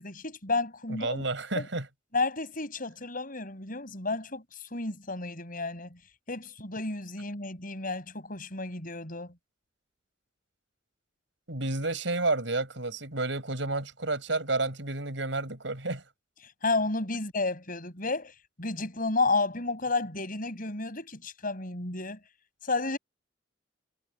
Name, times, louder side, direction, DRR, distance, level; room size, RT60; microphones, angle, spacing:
voice 1, 0.0-1.2 1.6-1.7 2.1-4.4 4.7-6.0 6.3-9.3 16.6-18.3 18.6-22.2 22.6-23.0, left 3 dB, 50° left, 7.8 m, -31 dB
voice 2, 0.9-1.9 11.5-16.0, right 2 dB, 80° right, 6.0 m, -30 dB
head